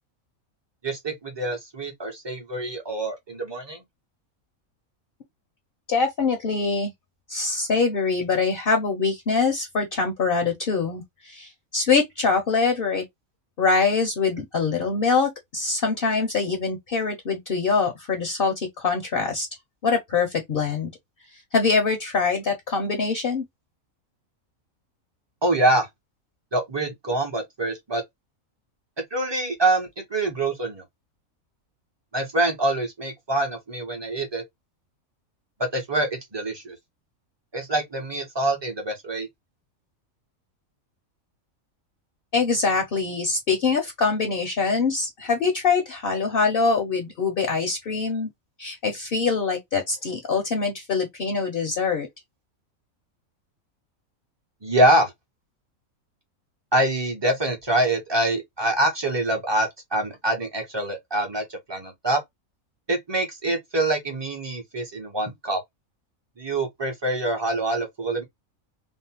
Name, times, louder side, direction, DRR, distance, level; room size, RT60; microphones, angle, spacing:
voice 1, 0.8-3.8 25.4-25.9 26.5-28.0 29.1-30.8 32.1-34.4 35.6-36.8 37.5-39.3 54.6-55.1 56.7-62.2 62.9-65.6 66.4-68.2, right 1 dB, 30° right, 0.5 m, -25 dB
voice 2, 5.9-6.9 7.3-13.0 13.6-19.5 19.8-20.9 21.5-23.4 42.3-48.3 48.6-52.1, left 4 dB, 55° left, 0.6 m, -24 dB
2.6 x 2.0 x 2.8 m
omnidirectional pair, 1.5 m